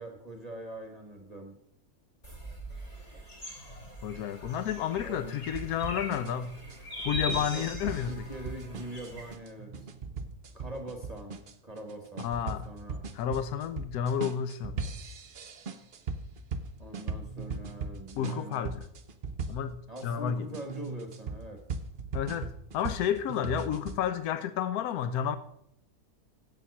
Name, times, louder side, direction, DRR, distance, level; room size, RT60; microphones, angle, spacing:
voice 1, 0.0-1.6 5.0-5.3 7.2-9.9 10.5-13.0 16.8-18.7 19.9-21.6, right 1 dB, 30° right, 1.2 m, -43 dB
sound 1, 2.2-9.3, equal, 25° left, 2.6 m, -41 dB
voice 2, 4.0-6.6 7.0-8.2 12.2-12.7 13.1-14.8 18.2-18.9 19.5-20.5 22.1-25.4, left 9 dB, 85° left, 1.1 m, -31 dB
sound 2, 5.5-20.0 20.5-24.0, right 4 dB, 50° right, 0.7 m, -39 dB
7.9 x 7.1 x 6.0 m
omnidirectional pair, 1.6 m